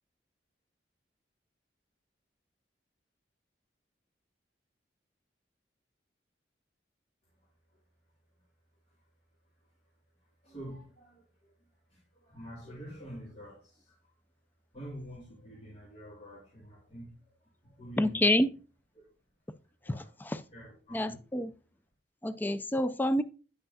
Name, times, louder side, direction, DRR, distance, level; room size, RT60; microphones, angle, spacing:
voice 1, 7.4-7.8 8.9-9.0 9.6-9.7 10.2-11.5 11.9-14.1 14.7-18.3 18.9-19.1 19.8-20.1 20.5-21.2, equal, 35° left, 2.3 m, -48 dB
voice 2, 18.0-18.5 19.9-20.4 20.9-21.5 22.2-23.2, left 1 dB, 10° left, 0.4 m, -28 dB
9.4 x 5.6 x 2.7 m
head